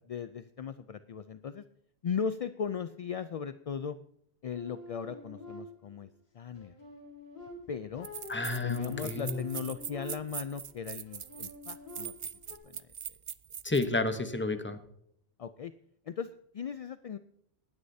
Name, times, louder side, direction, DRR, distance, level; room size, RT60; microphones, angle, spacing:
voice 1, 0.1-1.6 2.0-4.0 4.4-6.1 6.3-6.8 7.7-8.1 8.6-12.1 12.6-12.9 15.4-15.7 16.1-17.2, left 7 dB, 55° left, 12 dB, 0.4 m, -37 dB
sound 1, 4.5-6.0 6.6-10.6 11.1-12.6, left 1 dB, 85° left, 2.5 m, -48 dB
sound 2, 7.5-7.6 8.0-13.9, right 8 dB, 50° right, 0.4 m, -41 dB
voice 2, 8.3-9.5 13.6-14.8, left 3 dB, 10° left, 8 dB, 0.9 m, -31 dB
19.0 x 9.7 x 2.7 m, 0.72 s
omnidirectional pair, 1.1 m